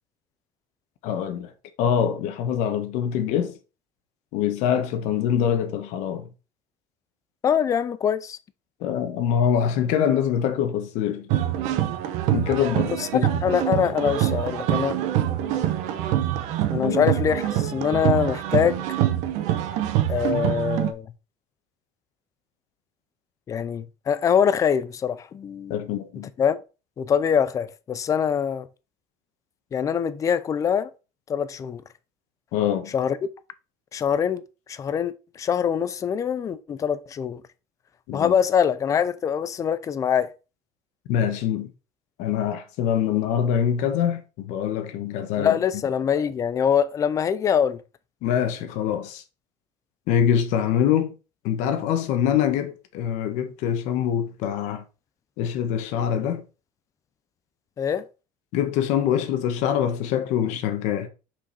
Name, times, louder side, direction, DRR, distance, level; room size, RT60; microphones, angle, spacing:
voice 1, 1.0-1.5 1.8-3.5 4.3-6.3 8.8-11.3 12.3-13.3 16.7-17.1 25.7-26.3 32.5-32.9 38.1-38.3 41.1-41.7 42.2-45.6 48.2-49.2 50.1-51.1 51.4-54.8 55.4-56.4 58.5-61.1, left 9 dB, 75° left, 1.2 m, -24 dB
voice 2, 7.4-8.4 12.9-15.0 16.7-18.8 20.1-21.1 23.5-25.9 26.4-26.6 27.0-28.7 29.7-30.9 31.3-31.8 32.9-33.2 33.9-34.4 34.7-37.4 38.1-40.3 45.4-47.8 57.8-58.0, left 8 dB, 25° left, 0.5 m, -24 dB
sound 1, 11.3-20.9, right 12 dB, 70° right, 0.9 m, -25 dB
5.8 x 5.1 x 4.1 m
cardioid pair, 155°, 12 cm